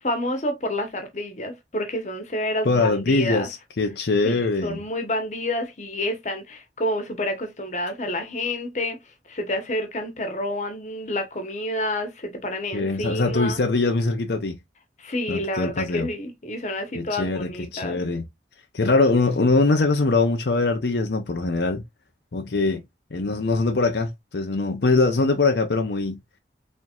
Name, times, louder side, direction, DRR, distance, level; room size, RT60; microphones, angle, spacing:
voice 1, 0.0-3.5 4.2-9.0 9.3-13.6 15.0-18.0, left 1 dB, 40° left, 1.1 m, -29 dB
voice 2, 2.6-4.8 12.7-14.6 15.3-16.1 17.0-18.2 18.7-21.8 22.3-22.8 23.1-26.2, left 3 dB, 75° left, 0.7 m, -22 dB
4.4 x 3.6 x 2.4 m
head